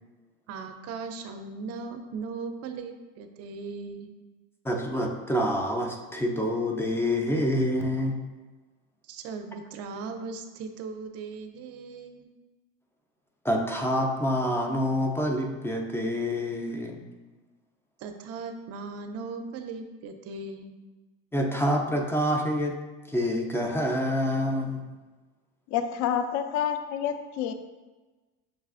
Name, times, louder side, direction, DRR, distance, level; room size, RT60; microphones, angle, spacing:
voice 1, 0.5-4.1 9.1-12.3 18.0-20.7, right 4 dB, 50° right, 6 dB, 0.5 m, -38 dB
voice 2, 4.6-8.1 13.4-17.1 21.3-22.8 23.1-24.8, equal, 5° left, 2 dB, 0.4 m, -27 dB
voice 3, 25.7-27.5, left 8 dB, 60° left, 8 dB, 0.4 m, -28 dB
6.3 x 2.3 x 2.4 m, 1.2 s
supercardioid pair, 105°, 32 cm